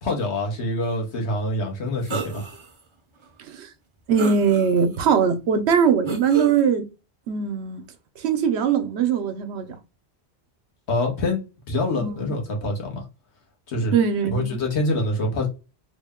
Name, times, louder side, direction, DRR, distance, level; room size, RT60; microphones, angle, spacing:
voice 1, 0.0-2.5 10.9-11.4 11.7-13.0 13.7-13.9 14.3-15.5, left 1 dB, 80° left, 1.4 m, -25 dB
sound 1, 2.1-2.7 3.2-3.3 4.1-5.0 6.1-6.6, right 4 dB, 35° right, 0.5 m, -31 dB
voice 2, 4.1-6.9 7.3-7.8 8.2-9.8 12.0-12.4 13.9-14.6, right 6 dB, 75° right, 0.9 m, -21 dB
3.3 x 2.1 x 3.5 m
omnidirectional pair, 1.1 m